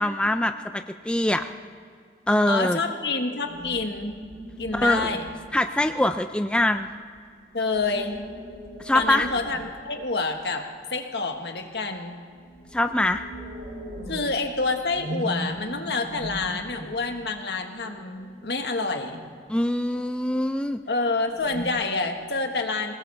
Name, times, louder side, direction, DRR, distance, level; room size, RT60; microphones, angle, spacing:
voice 1, 0.0-1.4 2.3-2.8 4.7-5.1 5.5-6.9 8.8-9.3 12.7-13.2 19.5-20.8, left 1 dB, 5° left, 7 dB, 0.4 m, -23 dB
voice 2, 2.5-4.2 4.6-5.3 7.5-8.3 8.9-12.2 14.1-19.2 20.9-22.9, left 3 dB, 70° left, 4 dB, 1.5 m, -28 dB
sound 1, 2.8-6.0 6.7-10.5 12.1-19.2 21.3-21.7, equal, 85° right, 3.1 m, -39 dB
22.0 x 19.0 x 3.4 m, 2.1 s
head